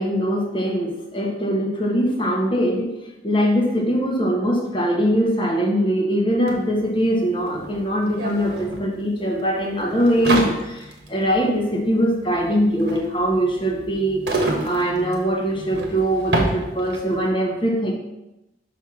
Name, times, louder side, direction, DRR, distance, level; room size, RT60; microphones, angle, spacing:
voice 1, 0.0-2.9 3.2-17.9, equal, 25° left, -1 dB, 1.3 m, -22 dB
sound 1, 6.5-6.6 6.8-17.2, right 1 dB, 60° right, 1.4 m, -29 dB
5.7 x 4.5 x 6.0 m, 0.92 s
head